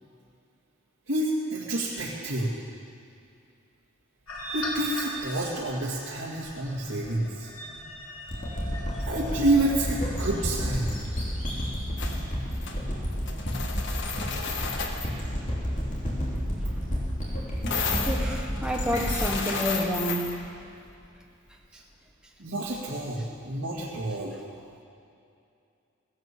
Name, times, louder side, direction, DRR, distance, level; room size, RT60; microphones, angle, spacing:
voice 1, 1.1-2.5 4.5-7.5 9.1-10.9 22.4-24.4, right 1 dB, 75° right, -6 dB, 2.2 m, -28 dB
sound 1, 4.3-10.4, equal, 85° left, 2.9 m, -39 dB
sound 2, 8.3-20.9, equal, 35° left, 3.1 m, -31 dB
sound 3, 12.0-12.2 12.5-12.8 13.1-15.1 17.7-20.4, left 5 dB, 60° left, 1.5 m, -33 dB
voice 2, 18.0-20.3, equal, 5° right, 0 dB, 1.4 m, -29 dB
16.5 x 11.0 x 7.4 m, 2.5 s
head